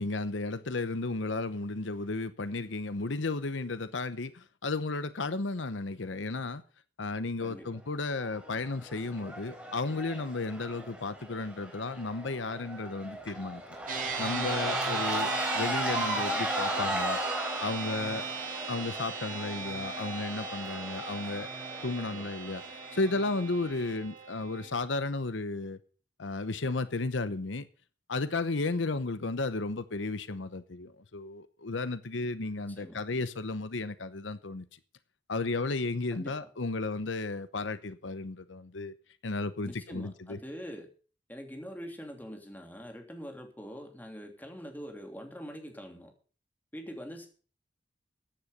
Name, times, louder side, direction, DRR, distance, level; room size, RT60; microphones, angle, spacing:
voice 1, 0.0-6.6 7.0-13.6 14.2-17.2 17.6-18.3 18.7-21.5 21.8-25.8 26.2-27.7 28.1-34.8 35.3-38.9 39.2-40.4, left 3 dB, 85° left, 0.9 m, -33 dB
Cheering / Crowd, 8.2-23.5, right 1 dB, 5° right, 4.0 m, -36 dB
sound 1, 13.9-24.7, right 6 dB, 45° right, 2.7 m, -38 dB
voice 2, 36.1-36.5 39.6-40.9 41.3-46.1 46.7-47.3, equal, 10° left, 3.0 m, -44 dB
14.5 x 10.0 x 5.2 m
head